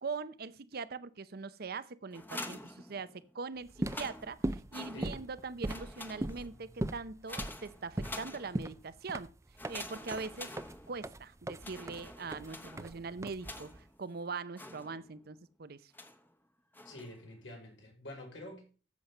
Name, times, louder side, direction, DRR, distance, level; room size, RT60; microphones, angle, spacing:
voice 1, 0.0-3.1 3.3-9.3 9.7-10.5 10.9-15.9, right 4 dB, 55° right, 0.7 m, -42 dB
sound 1, 2.1-3.4 3.8-5.4 5.6-6.6 7.3-8.8 9.6-11.2 11.6-14.0 14.6-15.3 15.9-16.3 16.7-17.2, left 1 dB, 10° left, 1.0 m, -47 dB
sound 2, 3.6-13.8, right 1 dB, 15° right, 0.4 m, -40 dB
voice 2, 16.8-18.6, left 1 dB, 90° left, 5.4 m, -47 dB
10.5 x 7.5 x 5.5 m
head